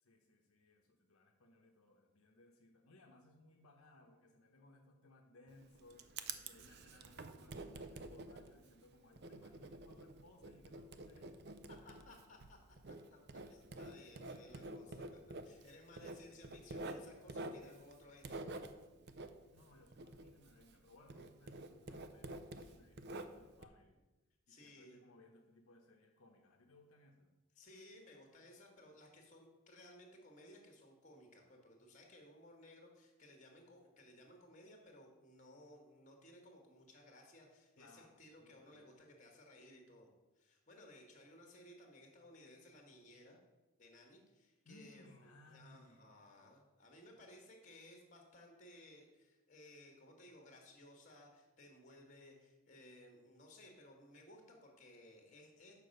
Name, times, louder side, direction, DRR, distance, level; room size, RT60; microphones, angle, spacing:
voice 1, 0.0-11.3 19.5-24.0 24.5-27.3 37.8-38.8 44.6-46.1, left 2 dB, 75° left, 2 dB, 0.8 m, -64 dB
Writing, 5.5-20.8 21.1-23.6, right 2 dB, 50° right, 0.5 m, -49 dB
voice 2, 11.7-12.6 12.9-18.4 22.6-22.8 24.5-25.0 27.5-40.1 40.3-43.4 43.8-55.7, left 1 dB, 35° left, 2 dB, 1.5 m, -60 dB
6.7 x 4.9 x 6.4 m, 1.1 s
head